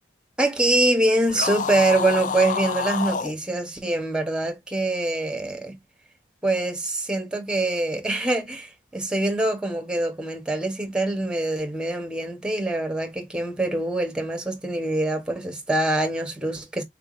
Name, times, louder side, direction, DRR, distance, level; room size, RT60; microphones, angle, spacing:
voice 1, 0.4-5.8 6.4-16.8, right 2 dB, 5° right, 0.8 m, -24 dB
sound 1, 1.2-3.3, left 5 dB, 45° left, 0.4 m, -28 dB
3.7 x 3.4 x 2.4 m
head